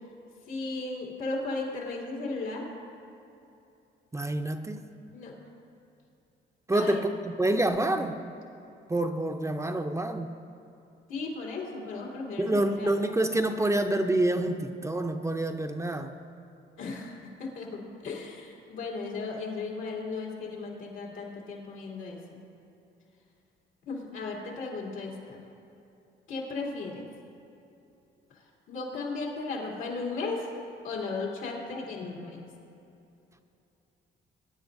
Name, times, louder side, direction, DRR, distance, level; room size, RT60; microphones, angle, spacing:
voice 1, 0.5-2.7 5.1-5.3 6.7-7.1 11.1-12.9 16.8-22.4 23.9-25.4 26.3-27.1 28.3-30.5 30.8-32.4, left 3 dB, 90° left, -3 dB, 3.0 m, -36 dB
voice 2, 4.1-4.8 6.7-8.2 8.9-10.3 12.4-16.1, right 1 dB, 15° right, 6 dB, 0.6 m, -27 dB
21.5 x 10.0 x 2.7 m, 2.8 s
cardioid pair, 90°, 20 cm